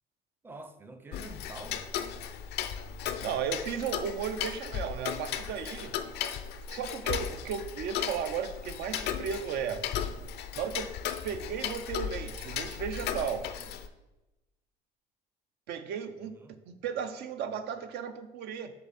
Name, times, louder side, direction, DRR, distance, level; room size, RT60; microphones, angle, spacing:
voice 1, 0.4-1.9 13.5-13.8 16.2-16.5, right 2 dB, 15° right, 0.5 m, -47 dB
Tick-tock, 1.1-13.9, left 9 dB, 75° left, 0.5 m, -36 dB
voice 2, 3.2-6.0 6.7-9.8 10.6-10.9 11.2-13.5 15.7-18.7, right 7 dB, 75° right, 0.5 m, -35 dB
6.9 x 3.6 x 4.0 m
cardioid pair, 110°, 17 cm